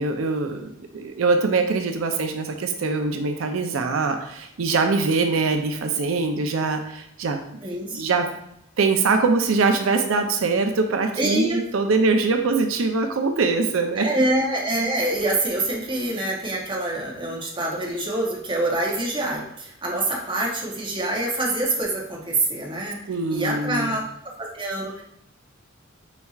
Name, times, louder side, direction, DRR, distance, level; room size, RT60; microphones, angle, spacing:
voice 1, 0.0-7.4 7.6-8.3 8.8-14.1 23.1-24.0, right 4 dB, 85° right, 6 dB, 0.5 m, -23 dB
voice 2, 7.6-8.0 11.2-11.6 14.0-23.0 23.3-25.0, right 1 dB, 25° right, -3 dB, 0.8 m, -25 dB
4.5 x 4.1 x 2.4 m, 0.76 s
head